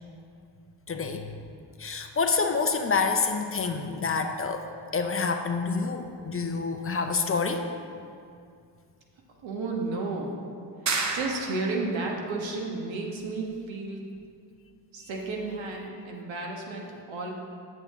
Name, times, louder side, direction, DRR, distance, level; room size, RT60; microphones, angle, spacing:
voice 1, 0.9-1.3 1.8-4.7 4.9-7.6, left 4 dB, 30° left, 5 dB, 0.6 m, -27 dB
voice 2, 9.4-10.4 11.1-14.0 14.9-17.4, right 3 dB, 75° right, 0 dB, 1.3 m, -32 dB
sound 1, 10.9-11.9, right 3 dB, 40° right, 0.8 m, -30 dB
7.9 x 6.7 x 3.6 m, 2.3 s
cardioid pair, 75°, 46 cm